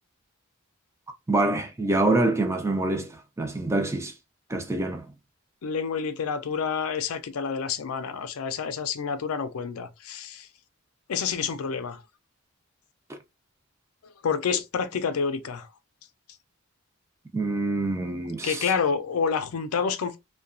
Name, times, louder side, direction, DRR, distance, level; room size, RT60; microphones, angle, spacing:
voice 1, 1.3-4.1 4.5-5.1 13.1-13.2 17.3-18.7, right 2 dB, 15° right, 0.4 m, -26 dB
voice 2, 5.6-10.5 11.1-12.0 14.2-15.7 18.4-20.2, left 6 dB, 80° left, 0.4 m, -28 dB
2.7 x 2.2 x 2.4 m
head